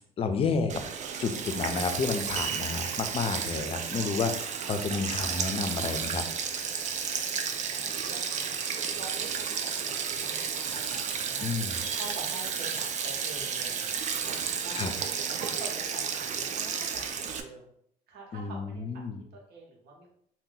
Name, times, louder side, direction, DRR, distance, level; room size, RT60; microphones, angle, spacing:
voice 1, 0.2-0.7 1.2-6.2 11.4-11.8 14.8-14.9 18.3-19.2, left 4 dB, 35° left, 8 dB, 0.4 m, -30 dB
Sink (filling or washing), 0.7-17.4, right 6 dB, 45° right, 0.4 m, -32 dB
voice 2, 7.1-8.6 9.0-11.5 11.9-14.9 15.3-17.7 18.1-19.0 19.3-20.1, right 3 dB, 75° right, -1 dB, 1.0 m, -46 dB
2.7 x 2.2 x 3.8 m, 0.69 s
cardioid pair, 110°, 17 cm